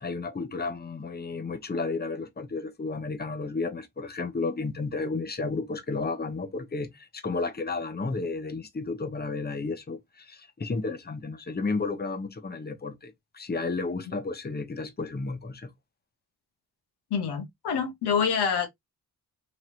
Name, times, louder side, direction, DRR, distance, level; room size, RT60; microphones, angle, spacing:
voice 1, 0.0-15.7, left 3 dB, 25° left, 0.8 m, -32 dB
voice 2, 17.1-18.7, left 6 dB, 85° left, 0.8 m, -26 dB
3.0 x 2.9 x 2.5 m
cardioid pair, 55°, 39 cm